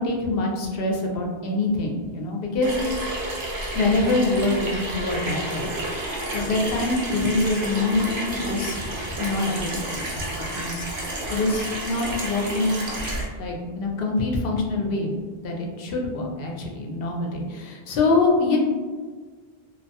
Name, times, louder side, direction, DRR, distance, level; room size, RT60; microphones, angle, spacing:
voice 1, 0.0-3.0 3.7-5.7 6.3-8.8 9.2-10.3 10.6-12.8 13.4-15.1 15.4-18.6, left 2 dB, 70° left, 0 dB, 0.7 m, -25 dB
Water tap faucet / Sink (filling or washing), 2.6-13.3, right 1 dB, 85° right, 1.0 m, -31 dB
2.3 x 2.2 x 2.7 m, 1.5 s
omnidirectional pair, 1.0 m